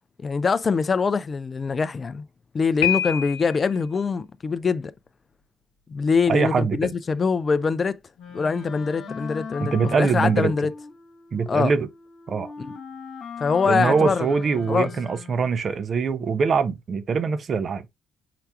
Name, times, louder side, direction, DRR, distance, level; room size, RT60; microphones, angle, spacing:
voice 1, 0.2-2.2 2.5-4.9 5.9-8.0 8.3-10.7 11.5-11.7 12.6-12.8 13.4-14.3 14.7-14.9, left 5 dB, 35° left, 0.4 m, -23 dB
Piano, 2.8-3.8, left 9 dB, 80° left, 0.6 m, -26 dB
voice 2, 6.3-6.9 9.6-10.5 11.3-11.9 12.3-12.5 13.7-17.9, right 5 dB, 45° right, 0.6 m, -23 dB
Wind instrument woodwind instrument, 8.2-15.6, left 5 dB, 60° left, 1.1 m, -39 dB
5.8 x 3.3 x 2.3 m
hypercardioid pair, 50°, 0 cm